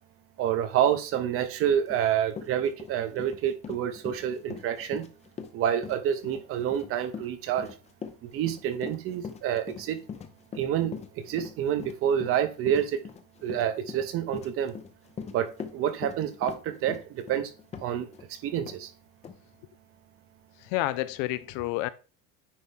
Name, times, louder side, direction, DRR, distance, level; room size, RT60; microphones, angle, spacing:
voice 1, 0.4-5.1 5.5-7.7 8.2-10.0 10.6-13.0 13.4-14.7 15.3-17.5 17.8-18.1 18.4-18.9, right 9 dB, 40° right, 0.9 m, -28 dB
Run, 1.9-2.0 2.3-18.3 18.7-18.8 19.2-19.4, left 6 dB, 20° left, 0.6 m, -41 dB
voice 2, 20.7-21.9, left 17 dB, 60° left, 0.6 m, -29 dB
9.7 x 4.2 x 3.7 m
cardioid pair, 160°, 34 cm